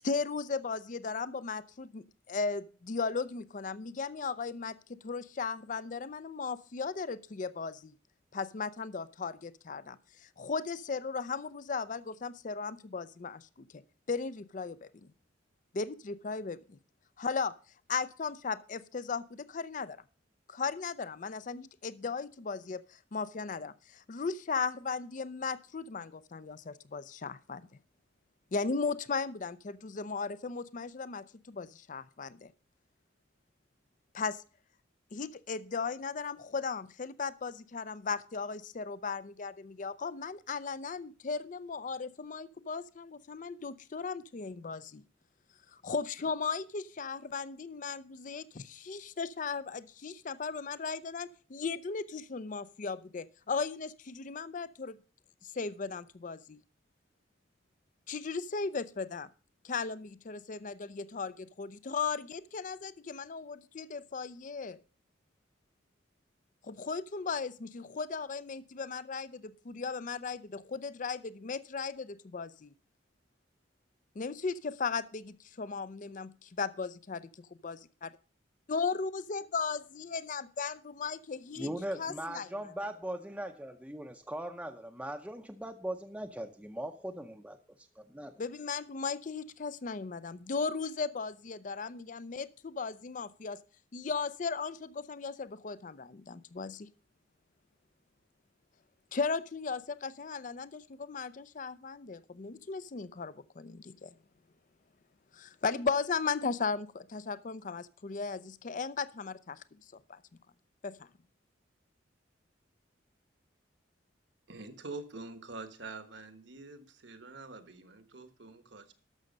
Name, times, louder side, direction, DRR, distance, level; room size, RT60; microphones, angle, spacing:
voice 1, 0.0-7.9 8.3-13.8 14.1-14.9 15.7-16.8 17.2-17.6 17.9-20.0 20.5-27.6 28.5-32.5 34.1-34.4 35.1-45.0 45.7-55.0 55.4-56.6 58.1-59.3 59.6-64.8 66.6-72.7 74.2-78.1 78.7-81.7 82.0-82.5 88.4-93.6 93.9-96.9 99.1-104.1 105.3-109.6 110.1-110.2 110.8-111.1, left 4 dB, 40° left, 16 dB, 0.5 m, -36 dB
voice 2, 81.6-88.3, right 1 dB, 5° right, 4 dB, 0.6 m, -40 dB
voice 3, 114.5-118.9, right 3 dB, 65° right, 9 dB, 1.3 m, -46 dB
12.5 x 6.4 x 5.2 m, 0.38 s
head